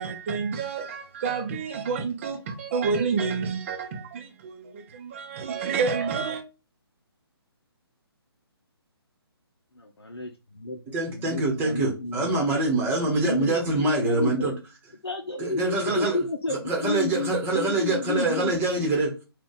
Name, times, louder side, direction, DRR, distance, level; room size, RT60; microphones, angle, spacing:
voice 1, 0.0-6.4, right 5 dB, 30° right, 0.6 m, -29 dB
voice 2, 9.7-10.8 11.1-12.5 13.2-14.5 15.0-18.6, left 3 dB, 75° left, 0.7 m, -31 dB
voice 3, 10.9-14.5 15.4-16.2 16.6-19.2, right 2 dB, 15° right, 1.2 m, -25 dB
3.9 x 2.4 x 3.8 m
figure-of-eight pair, 140°, 14 cm